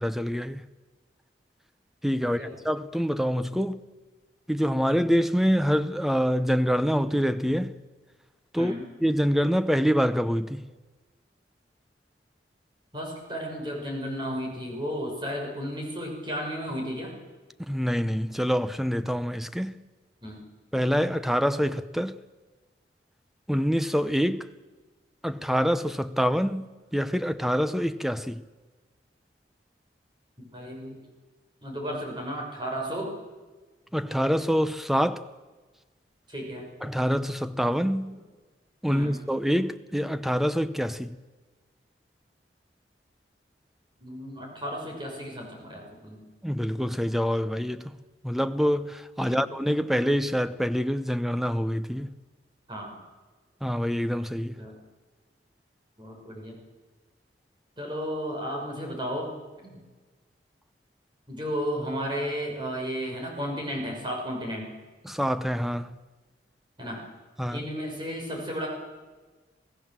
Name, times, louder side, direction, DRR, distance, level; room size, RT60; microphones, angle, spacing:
voice 1, 0.0-0.6 2.0-3.8 4.5-7.8 8.5-8.7 9.0-10.7 17.6-19.8 20.7-22.2 23.5-24.5 25.2-28.4 33.9-35.3 36.8-38.2 38.8-41.2 46.4-48.0 48.2-52.1 53.6-54.6 65.0-65.9 67.4-67.7, equal, ahead, 0.7 m, -26 dB
voice 2, 12.9-17.1 20.2-20.4 30.4-31.0 31.6-33.1 36.3-36.7 38.9-39.2 44.0-46.2 49.2-49.4 52.7-53.0 54.6-54.8 56.0-56.6 57.8-59.3 59.6-59.8 61.3-64.7 66.8-67.0 67.5-68.7, equal, 25° right, 5.9 m, -33 dB
27.0 x 17.0 x 7.7 m
head